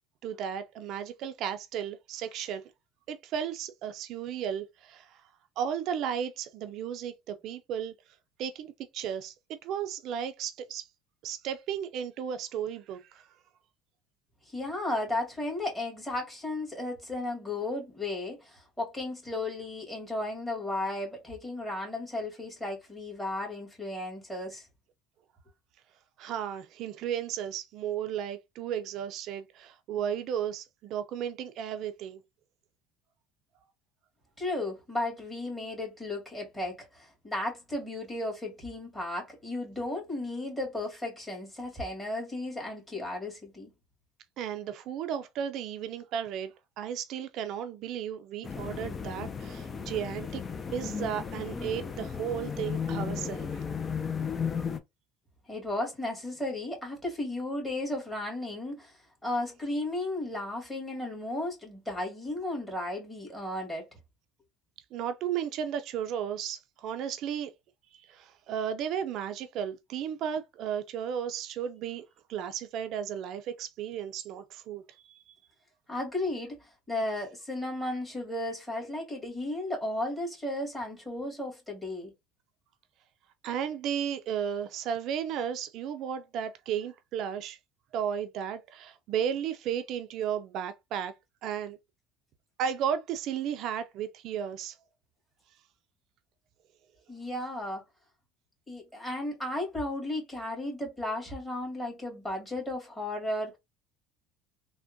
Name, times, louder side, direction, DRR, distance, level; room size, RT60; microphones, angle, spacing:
voice 1, 0.2-2.6 3.1-5.2 5.6-7.9 8.4-9.3 9.6-10.9 11.2-13.3 26.2-32.2 44.4-50.4 50.7-53.6 64.9-67.5 67.9-75.3 83.4-87.6 87.9-91.1 91.4-91.8 92.6-94.8, right 8 dB, 60° right, 0.4 m, -34 dB
voice 2, 14.5-24.7 34.4-43.7 55.5-63.9 75.9-82.1 97.1-97.8 98.7-103.6, left 1 dB, 10° left, 1.9 m, -34 dB
sound 1, 48.4-54.8, left 6 dB, 30° left, 0.4 m, -35 dB
3.4 x 2.1 x 2.5 m
supercardioid pair, 95°, 0 cm